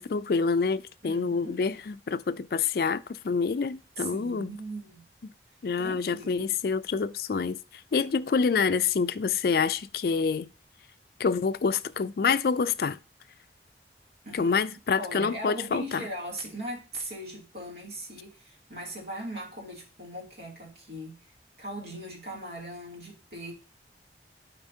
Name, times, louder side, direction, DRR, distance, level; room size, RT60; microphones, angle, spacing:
voice 1, 0.0-4.5 5.2-5.3 5.6-10.5 11.2-13.0 14.3-16.0, left 5 dB, 55° left, 0.4 m, -27 dB
voice 2, 1.0-1.7 4.0-5.0 5.8-6.6 14.2-21.2 21.6-23.5, right 1 dB, 60° right, 2.6 m, -39 dB
12.0 x 4.3 x 2.7 m
head